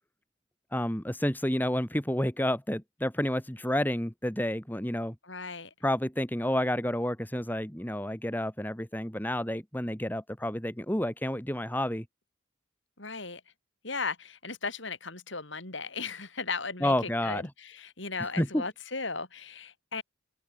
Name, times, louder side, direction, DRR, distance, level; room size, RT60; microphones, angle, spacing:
voice 1, 0.7-5.1 5.8-12.0 16.8-17.5 18.4-18.6, left 1 dB, 10° left, 2.4 m, -30 dB
voice 2, 5.2-5.7 13.0-13.4 13.8-20.0, left 4 dB, 65° left, 6.5 m, -36 dB
open air
head